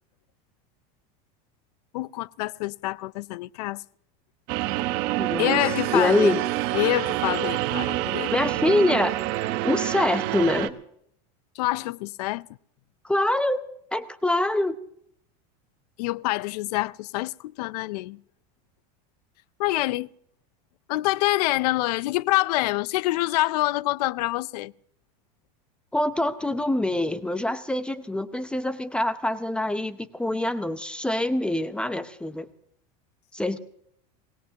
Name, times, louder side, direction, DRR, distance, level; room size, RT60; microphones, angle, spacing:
voice 1, 1.9-3.8 5.4-6.4 6.7-8.3 11.6-12.5 16.0-18.2 19.6-20.1 20.9-24.7, left 18 dB, 75° left, 0.5 m, -26 dB
sound 1, 4.5-10.7, right 15 dB, 55° right, 1.1 m, -27 dB
voice 2, 5.2-5.6 5.9-6.4 8.3-9.2 9.6-10.7 13.0-13.6 13.9-14.8 25.9-32.5 33.3-33.6, left 1 dB, 5° left, 0.7 m, -25 dB
23.5 x 19.0 x 2.9 m
supercardioid pair, 140°, 20 cm